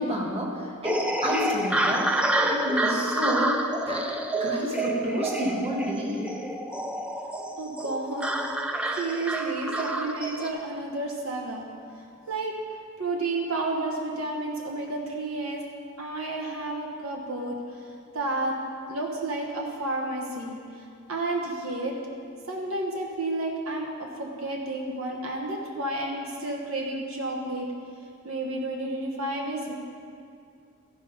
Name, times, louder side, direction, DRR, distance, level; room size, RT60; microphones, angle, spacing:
voice 1, 0.0-4.1 4.4-6.3, equal, 30° right, -2 dB, 1.4 m, -30 dB
sound 1, 0.8-10.5, right 1 dB, 5° right, 0.4 m, -28 dB
voice 2, 7.6-8.3 9.0-11.7 12.3-12.5 13.0-15.6 16.0-17.6 18.1-18.5 18.9-22.0 22.5-27.7 28.2-29.7, right 2 dB, 70° right, 0 dB, 1.0 m, -31 dB
13.5 x 5.0 x 5.3 m, 2.3 s
head